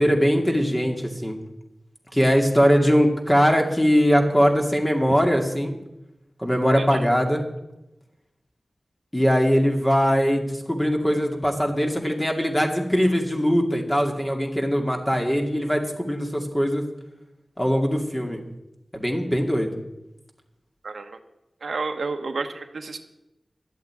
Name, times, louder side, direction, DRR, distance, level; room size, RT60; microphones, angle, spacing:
voice 1, 0.0-1.4 2.1-5.7 6.4-7.4 9.1-16.8 17.6-18.4 18.9-19.8, equal, 10° left, 2 dB, 2.4 m, -21 dB
voice 2, 20.8-21.2 21.6-23.0, right 4 dB, 90° right, 6 dB, 1.2 m, -31 dB
12.0 x 8.4 x 8.8 m, 0.93 s
wide cardioid pair, 75°, 0 cm